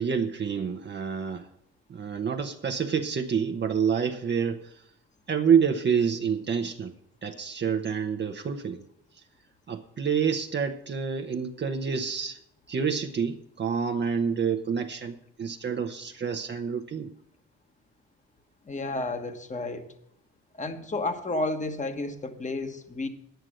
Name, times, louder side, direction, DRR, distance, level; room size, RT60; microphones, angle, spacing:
voice 1, 0.0-1.5 1.9-4.8 5.3-7.0 7.2-8.8 9.7-12.4 12.7-17.1, right 6 dB, 35° right, 0.8 m, -28 dB
voice 2, 18.7-19.9 20.6-23.1, left 2 dB, 25° left, 1.3 m, -31 dB
9.9 x 9.2 x 6.3 m
cardioid pair, 90°, 30 cm